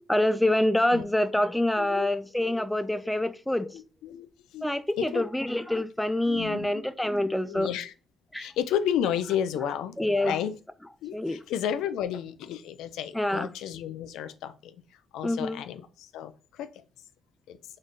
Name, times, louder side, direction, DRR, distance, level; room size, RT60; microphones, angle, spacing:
voice 1, 0.1-3.7 4.6-7.7 8.3-8.5 10.0-10.3 11.1-11.4 13.2-13.5 15.2-15.6, left 1 dB, 5° left, 0.3 m, -26 dB
voice 2, 0.7-1.0 1.8-2.1 2.3-2.4 3.0-3.1 3.7-4.3 4.5-4.7 5.0-5.3 6.3-6.7 7.0-7.9 8.4-10.0 10.2-10.5 11.0-16.8 17.5-17.6, left 9 dB, 90° left, 0.3 m, -32 dB
3.9 x 3.1 x 2.6 m
cardioid pair, 90°, 0 cm